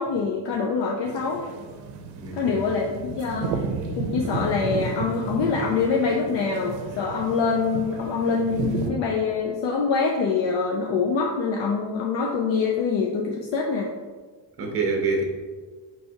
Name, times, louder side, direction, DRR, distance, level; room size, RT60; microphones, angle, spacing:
voice 1, 0.0-1.4 2.3-3.5 4.0-13.9, left 5 dB, 75° left, 0 dB, 0.5 m, -25 dB
Walking to the metro, 1.0-8.9, right 4 dB, 75° right, 0.6 m, -32 dB
voice 2, 2.1-2.7 14.6-15.2, right 3 dB, 30° right, 1 dB, 0.6 m, -26 dB
4.4 x 3.3 x 2.7 m, 1.4 s
cardioid pair, 170°, 44 cm